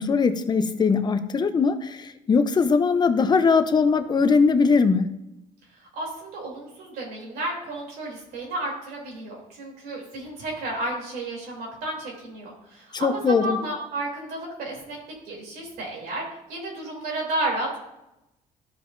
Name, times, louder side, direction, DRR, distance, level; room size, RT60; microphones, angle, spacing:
voice 1, 0.0-5.1 12.9-13.6, left 5 dB, 30° left, 9 dB, 0.6 m, -21 dB
voice 2, 5.8-15.0 15.2-16.2 16.5-17.8, right 1 dB, 85° right, -2 dB, 3.0 m, -32 dB
13.0 x 5.0 x 2.6 m, 0.90 s
cardioid pair, 115°, 15 cm